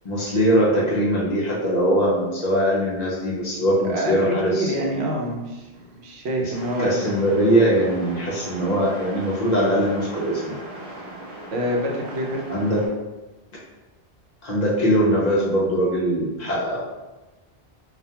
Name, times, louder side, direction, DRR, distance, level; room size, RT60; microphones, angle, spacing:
voice 1, 0.0-4.9 6.4-6.5 6.8-10.5 12.5-12.8 14.4-16.8, equal, 50° left, -6 dB, 0.6 m, -21 dB
voice 2, 3.8-6.9 11.5-12.4, right 1 dB, 85° right, -1 dB, 0.9 m, -26 dB
sound 1, 6.5-12.9, right 1 dB, 40° right, 0.9 m, -38 dB
2.4 x 2.1 x 2.7 m, 1.1 s
omnidirectional pair, 1.1 m